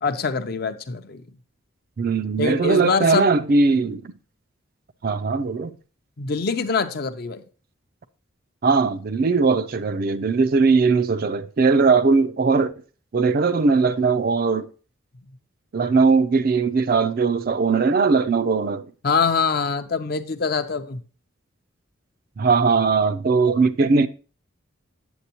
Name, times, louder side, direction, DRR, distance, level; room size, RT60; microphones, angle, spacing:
voice 1, 0.0-1.2 2.4-3.3 6.2-7.4 19.0-21.0, left 5 dB, 45° left, 0.5 m, -24 dB
voice 2, 2.0-4.1 5.0-5.8 8.6-12.7 13.1-14.7 15.7-18.9 22.4-24.1, right 4 dB, 45° right, 0.4 m, -19 dB
8.0 x 7.6 x 2.8 m
head